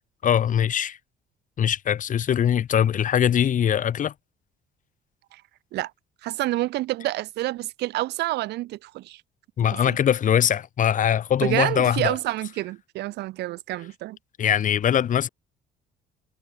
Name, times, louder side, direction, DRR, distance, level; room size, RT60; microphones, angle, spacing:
voice 1, 0.2-1.0 1.6-4.1 9.6-12.2 14.4-15.3, left 9 dB, 50° left, 3.4 m, -22 dB
voice 2, 6.2-9.2 9.9-10.0 11.4-14.2, right 17 dB, 80° right, 6.6 m, -28 dB
cardioid pair, 110°, 17 cm